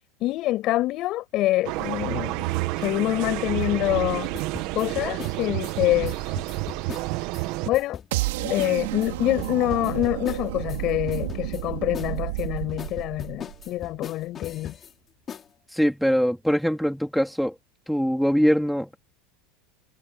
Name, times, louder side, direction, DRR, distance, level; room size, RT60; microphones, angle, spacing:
voice 1, 0.2-2.5 2.8-4.3 4.8-6.4 7.7-8.0 8.4-14.7, left 16 dB, 45° left, 7.0 m, -26 dB
sound 1, 1.6-7.7, right 20 dB, 55° right, 1.5 m, -29 dB
sound 2, 4.3-7.4 7.7-8.3 8.6-8.7 9.0-10.8 11.1-11.6 11.9-14.9 15.3-15.5, left 7 dB, 25° left, 5.3 m, -39 dB
sound 3, 8.1-14.1, right 19 dB, 75° right, 3.2 m, -31 dB
voice 2, 15.7-17.5 17.9-19.0, equal, ahead, 3.4 m, -22 dB
supercardioid pair, 140°, 0 cm